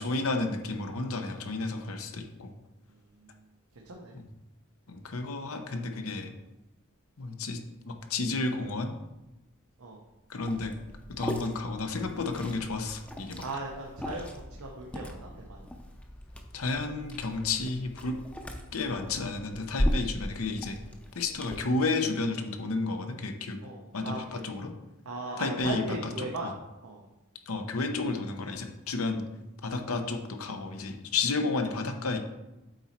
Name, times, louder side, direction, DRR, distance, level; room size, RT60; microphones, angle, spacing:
voice 1, 0.0-2.5 4.1-4.2 4.9-6.3 7.2-7.6 7.8-8.9 10.3-10.7 11.2-13.4 16.5-18.2 18.7-20.8 21.1-23.6 23.9-24.7 25.4-25.8 26.2-26.5 27.5-29.3 29.6-32.2, left 3 dB, 85° left, 6 dB, 0.8 m, -31 dB
voice 2, 2.9-3.4 3.7-4.2 9.8-10.0 13.4-15.7 23.6-24.4 25.0-26.5 26.8-27.0 29.6-29.8, right 2 dB, 90° right, -1 dB, 0.9 m, -38 dB
Liquid, 10.4-21.5, equal, 5° left, 0.6 m, -37 dB
7.8 x 4.2 x 4.5 m, 0.99 s
head